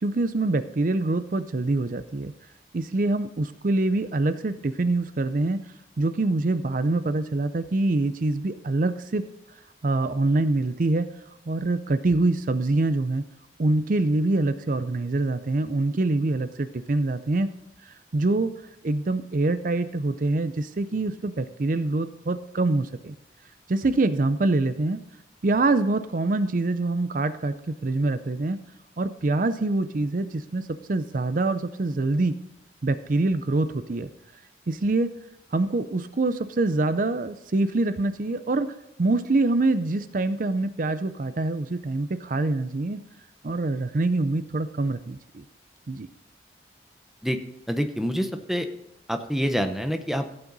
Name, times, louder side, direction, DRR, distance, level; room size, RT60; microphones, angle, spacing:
voice 1, 0.0-2.3 2.7-9.2 9.8-11.1 11.5-13.2 13.6-17.5 17.8-18.5 18.8-23.2 23.7-25.0 25.4-28.6 29.0-32.3 32.8-34.1 34.7-35.1 35.5-38.7 39.0-43.0 43.4-45.4 45.9-46.1, right 2 dB, 45° right, 12 dB, 0.5 m, -25 dB
voice 2, 47.7-48.7 49.1-50.3, equal, ahead, 7 dB, 0.8 m, -26 dB
15.5 x 8.8 x 4.0 m, 0.86 s
head